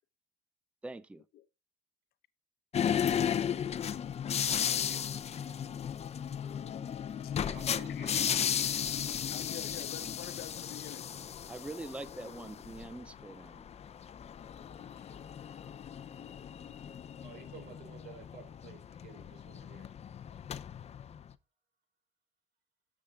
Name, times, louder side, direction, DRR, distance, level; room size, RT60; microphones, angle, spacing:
voice 1, 0.8-1.2 10.0-10.2 11.5-13.7, right 2 dB, 5° right, 0.5 m, -44 dB
sound 1, 2.7-21.3, left 8 dB, 40° left, 0.6 m, -35 dB
voice 2, 4.4-5.7 7.4-8.3 8.9-9.3 17.2-19.9, right 5 dB, 85° right, 4.1 m, -53 dB
voice 3, 7.2-8.0 8.5-11.2 15.0-15.1, left 13 dB, 65° left, 0.9 m, -48 dB
17.5 x 7.3 x 2.5 m
cardioid pair, 110°, 17 cm